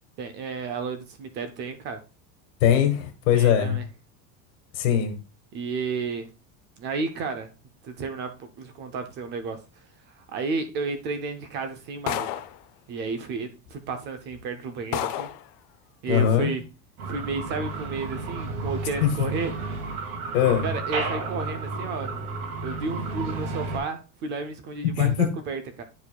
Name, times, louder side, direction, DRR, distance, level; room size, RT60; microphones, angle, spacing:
voice 1, 0.2-2.0 3.3-3.8 5.5-6.3 6.8-7.5 7.8-9.6 10.2-12.3 12.9-15.3 16.0-16.6 17.0-19.5 20.6-22.2 22.6-25.8, right 4 dB, 30° right, 8 dB, 0.4 m, -32 dB
voice 2, 2.6-3.8 4.7-5.2 16.1-16.5 19.0-19.1 20.3-20.7 24.8-25.3, left 9 dB, 75° left, 7 dB, 1.6 m, -21 dB
sound 1, 12.1-12.6 13.7-13.8 14.3-14.4 14.9-15.5, left 13 dB, 60° left, 0.6 m, -30 dB
sound 2, 17.0-23.8, right 3 dB, 85° right, 2.2 m, -32 dB
10.0 x 4.6 x 2.2 m, 0.30 s
cardioid pair, 180°, 41 cm